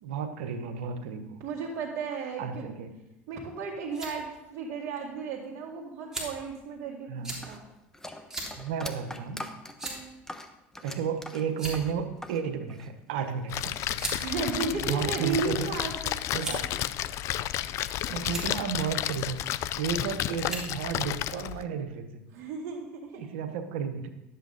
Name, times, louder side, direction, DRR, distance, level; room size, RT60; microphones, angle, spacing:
voice 1, 0.0-1.4 2.4-2.9 7.1-7.5 8.6-9.4 10.8-13.8 14.2-14.3 14.8-15.7 16.3-16.6 18.1-22.1 23.2-24.1, right 7 dB, 85° right, 8 dB, 1.1 m, -33 dB
voice 2, 1.4-2.7 3.3-7.6 9.8-10.0 14.2-16.2 22.3-23.2, right 4 dB, 60° right, -5 dB, 1.9 m, -34 dB
sound 1, 3.9-4.1 5.0-5.1 6.1-6.5 7.2-7.4 8.3-8.5 8.9-9.0 9.8-10.1 11.0-11.2 11.5-12.0 13.1-13.3 14.0-14.2 15.0-15.6 16.4-16.8 17.5-17.9 18.2-18.5 19.7-20.0 20.4-20.7, right 2 dB, 10° right, 3.2 m, -37 dB
sound 2, 7.3-12.4 12.7-13.5, left 1 dB, 10° left, 1.0 m, -42 dB
Splash splatter, 13.5-21.6, left 13 dB, 60° left, 0.4 m, -32 dB
11.5 x 8.1 x 4.0 m, 0.93 s
supercardioid pair, 90°, 6 cm